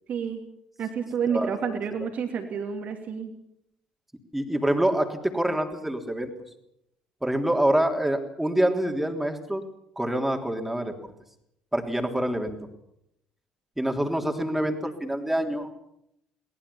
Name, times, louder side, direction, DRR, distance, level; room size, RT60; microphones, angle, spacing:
voice 1, 0.1-0.4 0.8-3.3, right 6 dB, 50° right, 4 dB, 2.9 m, -29 dB
voice 2, 1.3-1.8 4.3-6.3 7.2-9.6 9.9-11.1 11.7-12.6 13.8-15.7, right 1 dB, 5° right, 4 dB, 3.5 m, -26 dB
23.5 x 19.5 x 7.2 m, 0.77 s
figure-of-eight pair, 50°, 3 cm